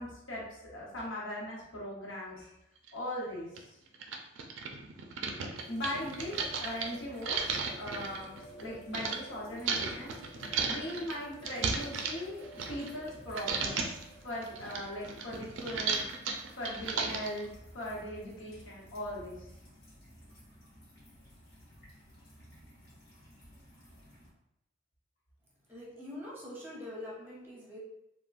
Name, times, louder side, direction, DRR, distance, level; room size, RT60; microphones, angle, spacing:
voice 1, 0.0-2.5 2.9-3.8 5.7-8.3 8.6-12.4 12.7-13.8 14.2-16.0 16.5-17.5 17.7-19.5, left 1 dB, 80° left, -4 dB, 0.9 m, -39 dB
sound 1, 2.9-3.0 3.6-3.7 3.9-9.2 9.7-13.1 13.4-14.0 14.4-17.4, right 5 dB, 75° right, 0.4 m, -35 dB
sound 2, 5.4-17.1, equal, 35° left, 0.4 m, -54 dB
sound 3, 5.6-24.3, equal, 50° left, 0.9 m, -57 dB
voice 2, 25.7-27.8, left 1 dB, 10° right, -5 dB, 0.7 m, -44 dB
3.5 x 2.0 x 2.4 m, 0.86 s
head